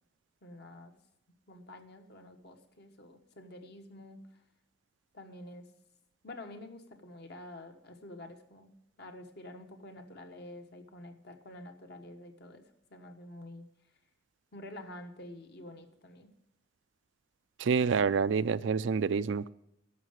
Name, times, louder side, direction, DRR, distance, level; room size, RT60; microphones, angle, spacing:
voice 1, 0.4-0.9 1.5-4.2 5.1-5.7 6.2-8.7 9.0-12.6 12.9-13.6 14.5-16.3, left 1 dB, 55° left, 5 dB, 1.3 m, -48 dB
voice 2, 17.6-19.5, right 5 dB, 75° right, 15 dB, 0.4 m, -27 dB
11.0 x 6.7 x 9.0 m, 0.81 s
head